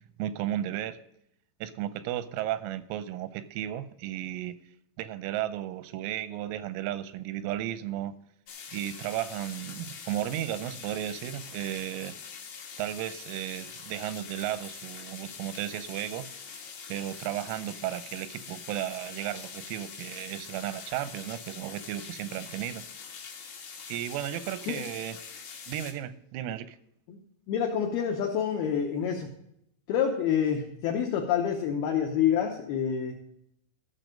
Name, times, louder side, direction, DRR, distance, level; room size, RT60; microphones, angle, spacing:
voice 1, 0.2-1.0 1.6-4.6 5.0-8.1 8.7-12.2 12.8-16.6 16.9-22.9 23.9-25.2 25.7-26.8, right 12 dB, 90° right, 14 dB, 3.4 m, -34 dB
sound 1, 8.5-25.9, left 6 dB, 65° left, 1.8 m, -44 dB
voice 2, 27.5-29.3 29.9-33.2, left 8 dB, 80° left, 1 dB, 2.2 m, -27 dB
14.5 x 6.5 x 5.0 m, 0.76 s
omnidirectional pair, 5.9 m